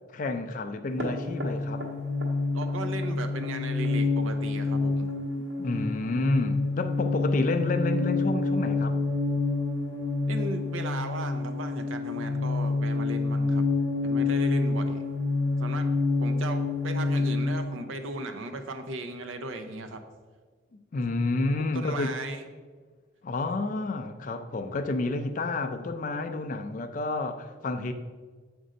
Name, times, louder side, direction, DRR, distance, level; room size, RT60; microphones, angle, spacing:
voice 1, 0.1-1.9 5.4-9.0 20.7-22.1 23.2-27.9, left 2 dB, 40° left, 8 dB, 0.3 m, -30 dB
sound 1, 0.9-17.6, left 3 dB, 55° right, 1.2 m, -28 dB
voice 2, 2.5-5.1 10.3-13.6 14.0-15.0 15.6-15.9 16.2-20.0 21.6-22.4, right 2 dB, 90° right, 7 dB, 0.6 m, -37 dB
7.4 x 2.6 x 5.0 m, 1.4 s
head